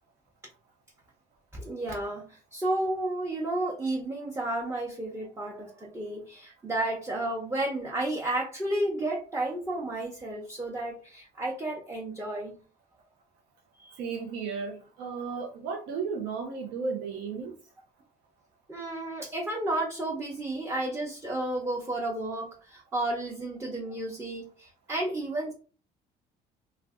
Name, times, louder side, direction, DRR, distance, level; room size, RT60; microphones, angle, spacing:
voice 1, 1.5-12.6 18.7-25.5, right 1 dB, 15° right, 0.7 m, -32 dB
voice 2, 13.8-17.5, right 5 dB, 85° right, 0.5 m, -34 dB
2.5 x 2.1 x 3.4 m
cardioid pair, 110°, 17 cm